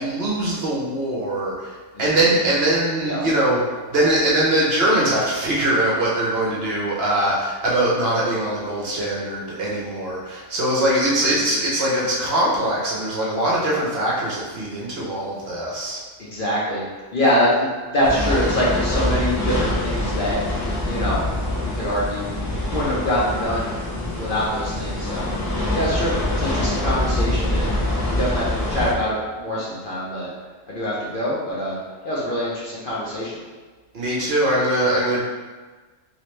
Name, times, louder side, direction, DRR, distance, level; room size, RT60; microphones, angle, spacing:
voice 1, 0.0-3.6 3.9-16.0 33.9-35.2, right 1 dB, 55° right, -5 dB, 1.0 m, -22 dB
voice 2, 16.2-16.8 17.1-20.4 20.8-21.2 21.6-22.4 22.7-23.7 24.2-27.7 28.1-30.3 30.7-31.8 32.0-33.4, equal, 50° left, -7 dB, 0.8 m, -24 dB
sound 1, 18.0-28.9, left 1 dB, 30° left, 0.3 m, -25 dB
3.1 x 3.0 x 3.1 m, 1.3 s
omnidirectional pair, 1.3 m